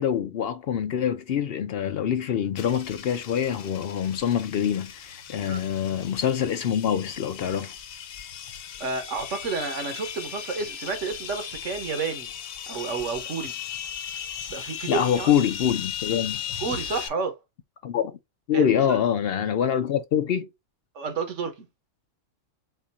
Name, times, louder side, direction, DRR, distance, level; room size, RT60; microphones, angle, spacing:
voice 1, 0.0-7.7 14.9-16.4 17.8-18.1 18.5-20.5, left 9 dB, 60° left, 0.6 m, -25 dB
sound 1, 2.6-17.1, left 9 dB, 85° left, 1.1 m, -37 dB
voice 2, 8.8-12.3 12.7-13.5 14.5-15.3 16.6-17.4 18.5-19.0 20.9-21.7, right 4 dB, 70° right, 1.2 m, -30 dB
4.4 x 2.4 x 4.1 m
omnidirectional pair, 1.4 m